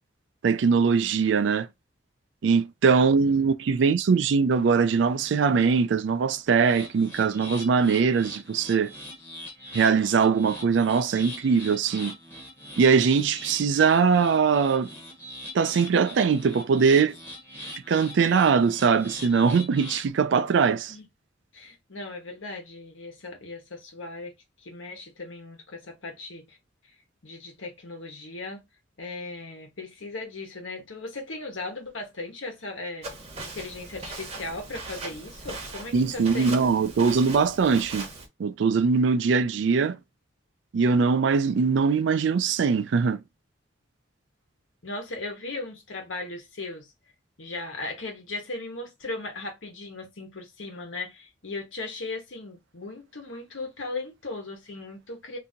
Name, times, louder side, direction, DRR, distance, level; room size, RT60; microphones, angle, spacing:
voice 1, 0.4-1.7 2.4-8.9 9.7-12.2 12.8-14.9 15.5-17.2 17.9-20.9 35.9-38.1 38.4-40.0 40.7-43.2, right 5 dB, 65° right, 0.3 m, -22 dB
sound 1, 6.5-20.1, left 1 dB, 10° left, 0.9 m, -42 dB
voice 2, 21.5-24.3 24.6-26.6 27.2-28.6 29.0-33.1 33.4-36.7 44.8-46.9 47.4-55.4, left 2 dB, 75° left, 1.1 m, -37 dB
Walk footsteps, 33.0-38.3, right 2 dB, 30° right, 0.8 m, -39 dB
2.7 x 2.7 x 3.6 m
head